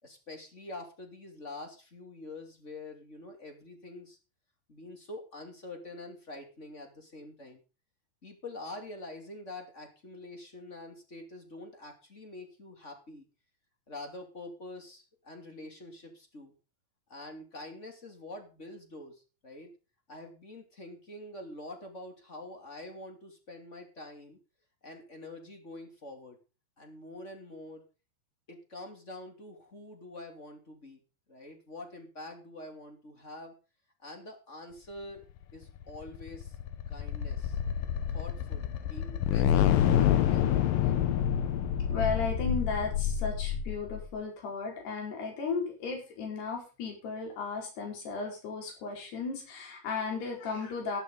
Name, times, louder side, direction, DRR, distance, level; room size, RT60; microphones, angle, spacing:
voice 1, 0.0-4.2 4.7-7.6 8.2-13.3 13.9-16.5 17.1-19.7 20.1-24.4 24.8-26.4 26.8-27.8 28.5-31.0 31.3-33.5 34.0-35.2 35.5-36.6 36.9-37.6 38.1-41.0, left 2 dB, 20° left, 4 dB, 2.5 m, -46 dB
sound 1, 35.7-44.1, left 10 dB, 70° left, 2.6 m, -28 dB
voice 2, 41.9-51.0, left 4 dB, 85° left, 0 dB, 6.9 m, -35 dB
14.0 x 12.0 x 3.9 m, 0.33 s
omnidirectional pair, 4.6 m